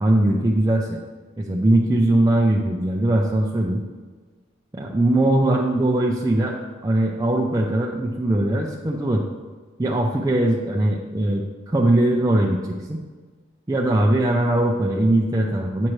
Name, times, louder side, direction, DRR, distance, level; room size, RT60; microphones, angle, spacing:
voice 1, 0.0-1.0 1.4-3.8 4.7-6.6 6.8-9.2 9.8-13.0 13.7-15.9, right 1 dB, 20° right, -2 dB, 0.4 m, -20 dB
8.4 x 6.3 x 3.1 m, 1.4 s
head